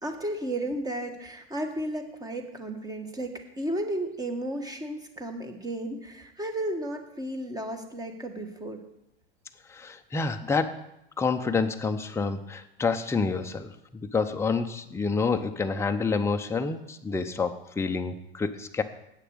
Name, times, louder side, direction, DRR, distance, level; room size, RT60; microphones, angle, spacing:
voice 1, 0.0-8.8, right 1 dB, 10° right, 6 dB, 1.5 m, -33 dB
voice 2, 9.7-10.8 11.2-18.8, left 4 dB, 10° left, 6 dB, 0.7 m, -28 dB
8.5 x 6.6 x 7.9 m, 0.86 s
hypercardioid pair, 105°, 30 cm